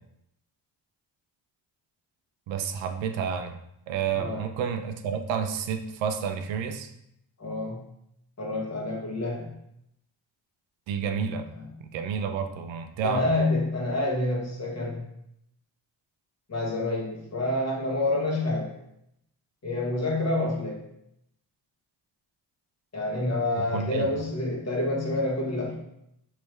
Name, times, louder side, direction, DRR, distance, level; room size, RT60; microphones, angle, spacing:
voice 1, 2.5-3.6 3.9-6.9 10.9-11.5 11.9-13.3 23.5-24.1, right 7 dB, 85° right, 7 dB, 0.5 m, -30 dB
voice 2, 7.4-7.8 8.4-9.5 11.6-11.7 13.0-15.0 16.5-18.7 19.6-20.8 22.9-25.7, left 2 dB, 35° left, -2 dB, 1.2 m, -28 dB
3.3 x 3.2 x 3.1 m, 0.79 s
cardioid pair, 70°, 44 cm